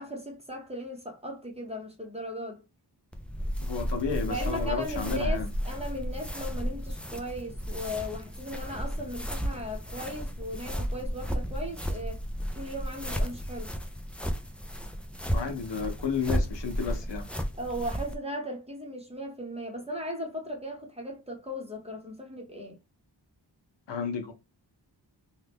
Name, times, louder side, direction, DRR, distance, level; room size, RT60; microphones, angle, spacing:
voice 1, 0.0-2.6 4.3-12.2 12.5-13.7 17.6-22.8, equal, 15° right, 0.8 m, -37 dB
sound 1, 3.1-18.1, equal, 5° left, 0.3 m, -33 dB
voice 2, 3.6-5.5 15.3-17.3 23.9-24.3, left 5 dB, 75° left, 0.8 m, -32 dB
3.1 x 2.2 x 3.4 m
wide cardioid pair, 95°, 43 cm